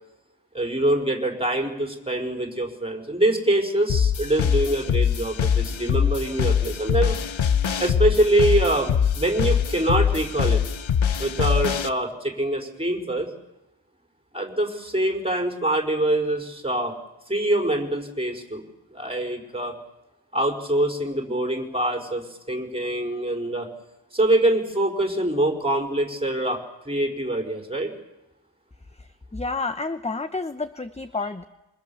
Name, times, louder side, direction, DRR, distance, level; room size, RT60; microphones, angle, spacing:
voice 1, 0.5-7.2 7.8-10.6 11.2-13.3 14.3-16.9 17.3-18.6 18.9-19.7 20.3-23.7 24.1-26.6 26.8-27.9, right 1 dB, 10° right, 2 dB, 5.0 m, -24 dB
sound 1, 3.9-11.9, left 7 dB, 80° left, 1.0 m, -23 dB
voice 2, 29.3-31.4, left 3 dB, 15° left, 10 dB, 0.9 m, -29 dB
27.5 x 24.5 x 7.2 m, 0.95 s
wide cardioid pair, 95°, 46 cm